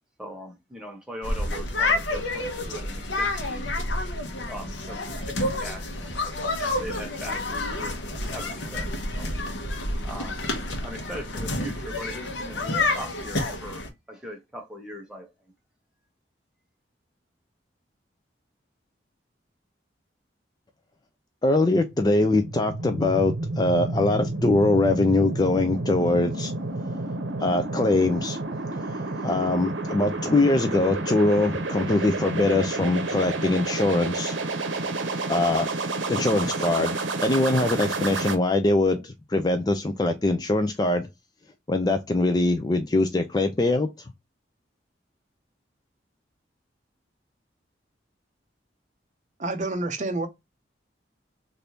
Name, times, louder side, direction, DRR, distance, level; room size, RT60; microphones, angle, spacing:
voice 1, 0.2-3.7 4.5-6.1 6.6-8.0 8.3-9.3 10.0-10.4 10.8-15.3, equal, 5° right, 0.9 m, -40 dB
sound 1, 1.2-13.9, left 2 dB, 85° left, 0.9 m, -29 dB
voice 2, 21.4-26.5 27.4-28.4 28.8-34.4 34.7-34.9 35.3-35.7 36.1-41.1 41.7-43.9, left 2 dB, 20° left, 0.4 m, -23 dB
sound 2, 21.8-38.3, right 2 dB, 90° right, 0.7 m, -30 dB
voice 3, 49.4-50.3, right 2 dB, 40° right, 0.6 m, -28 dB
3.4 x 2.6 x 2.8 m
head